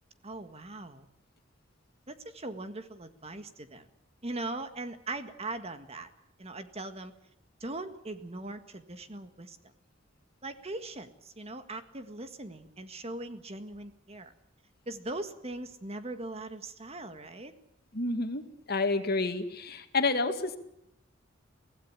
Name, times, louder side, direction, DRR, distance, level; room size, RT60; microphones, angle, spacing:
voice 1, 0.2-1.1 2.1-3.9 4.2-6.1 6.4-7.1 7.6-9.6 10.4-14.3 14.9-17.5, right 2 dB, 35° right, 9 dB, 1.7 m, -40 dB
voice 2, 17.9-18.4 18.7-20.6, left 3 dB, 55° left, 8 dB, 2.2 m, -29 dB
24.0 x 17.0 x 8.7 m, 0.78 s
head